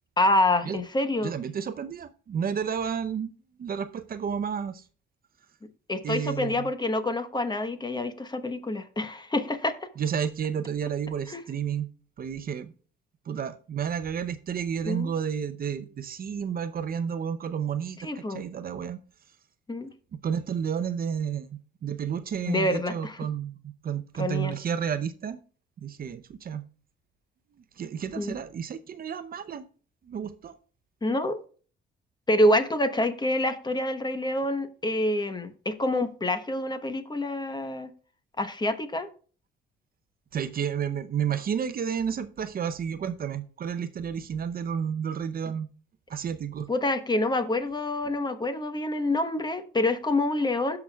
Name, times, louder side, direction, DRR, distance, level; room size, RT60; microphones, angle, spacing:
voice 1, 0.2-1.3 5.9-9.9 11.3-11.4 14.8-15.1 18.0-18.4 19.7-19.9 22.4-23.3 24.2-24.5 28.2-28.3 31.0-31.4 32.3-37.9 38.4-39.1 46.7-50.8, left 1 dB, 20° left, 1.0 m, -27 dB
voice 2, 1.2-4.8 6.0-6.7 10.0-11.9 12.2-12.7 13.3-19.0 20.2-23.6 23.8-25.4 25.8-26.6 27.8-29.6 30.0-30.5 40.3-45.7 46.1-46.7, right 7 dB, 45° right, 0.6 m, -31 dB
16.5 x 5.9 x 2.3 m
cardioid pair, 90°, 20 cm